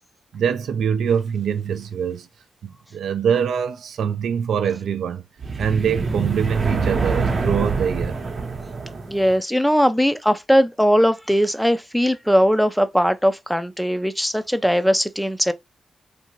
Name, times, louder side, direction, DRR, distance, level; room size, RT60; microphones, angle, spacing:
voice 1, 0.3-2.3 2.6-5.2 5.6-8.1, right 7 dB, 85° right, 0.3 m, -23 dB
sound 1, 5.4-9.4, right 4 dB, 55° right, 0.7 m, -25 dB
voice 2, 9.1-15.5, equal, ahead, 0.4 m, -19 dB
2.7 x 2.5 x 2.9 m
cardioid pair, 75°, 0 cm